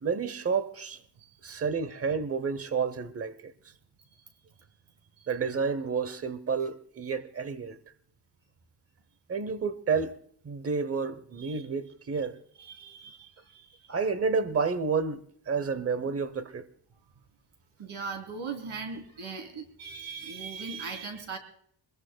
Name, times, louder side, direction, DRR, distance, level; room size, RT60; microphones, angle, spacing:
voice 1, 0.0-1.0 1.4-3.5 5.3-7.8 9.3-10.2 10.4-12.4 13.9-15.2 15.5-16.7, right 5 dB, 30° right, 0.8 m, -30 dB
voice 2, 12.5-13.9 17.8-21.4, right 5 dB, 85° right, 3.1 m, -39 dB
25.0 x 21.5 x 2.2 m
wide cardioid pair, 170°, 47 cm